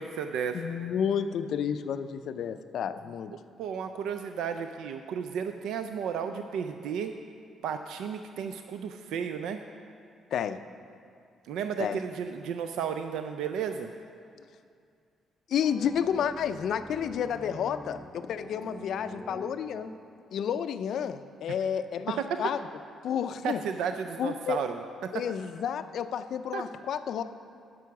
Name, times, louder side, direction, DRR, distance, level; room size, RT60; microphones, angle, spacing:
voice 1, 0.0-0.6 3.6-7.1 7.6-9.6 11.4-13.9 22.3-22.4 23.4-24.8 26.5-26.6, right 7 dB, 85° right, 7 dB, 0.3 m, -33 dB
voice 2, 0.5-3.3 10.3-10.6 11.8-12.0 15.5-19.9 20.3-22.6 23.0-23.6 24.2-24.6 25.1-27.2, left 8 dB, 70° left, 11 dB, 0.4 m, -31 dB
sound 1, 15.6-20.5, equal, 10° right, 0.6 m, -46 dB
9.3 x 6.2 x 5.8 m, 2.4 s
cardioid pair, 90°, 0 cm